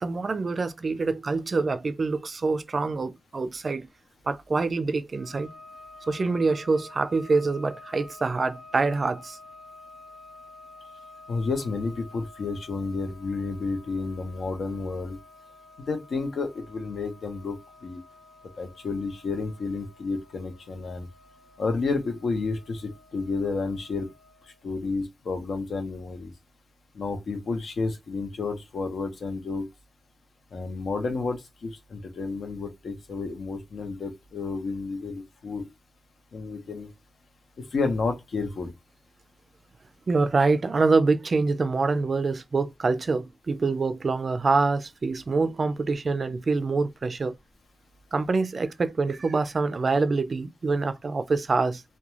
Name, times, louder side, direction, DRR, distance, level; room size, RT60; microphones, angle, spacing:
voice 1, 0.0-3.9 4.3-5.5 6.1-9.4 40.1-47.4 48.1-51.8, right 3 dB, 45° right, 0.3 m, -25 dB
sound 1, 5.1-24.7, left 2 dB, 30° left, 0.8 m, -50 dB
voice 2, 11.3-15.2 15.8-17.6 17.8-18.0 18.6-21.1 21.6-24.1 24.6-26.3 26.9-29.7 30.5-35.6 36.3-36.9 37.7-38.7, left 4 dB, 80° left, 0.8 m, -31 dB
2.4 x 2.2 x 3.0 m
wide cardioid pair, 140°, 0 cm